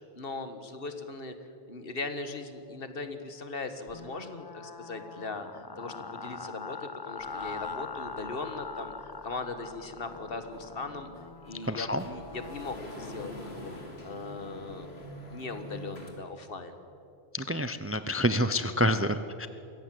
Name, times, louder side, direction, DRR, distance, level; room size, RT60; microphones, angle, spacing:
voice 1, 0.1-1.3 1.7-11.1 11.4-16.7, left 3 dB, 65° left, 9 dB, 1.6 m, -39 dB
sound 1, 3.9-12.8, left 4 dB, 30° left, 0.6 m, -42 dB
sound 2, 7.2-16.1, left 1 dB, 85° left, 3.1 m, -47 dB
voice 2, 11.7-12.0 17.3-19.5, equal, 15° right, 11 dB, 0.5 m, -28 dB
22.5 x 17.0 x 7.7 m, 2.8 s
omnidirectional pair, 1.0 m